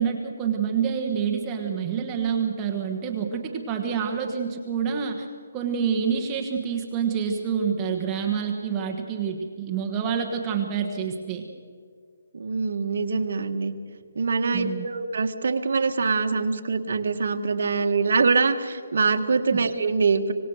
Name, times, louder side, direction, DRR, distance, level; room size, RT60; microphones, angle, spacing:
voice 1, 0.0-5.3 5.5-11.4 14.5-14.9 19.5-19.6, right 7 dB, 15° right, 1 dB, 1.3 m, -27 dB
voice 2, 12.3-13.7 14.1-20.3, right 4 dB, 60° right, 5 dB, 1.7 m, -24 dB
25.0 x 19.5 x 6.5 m, 2.1 s
hypercardioid pair, 175°, 0 cm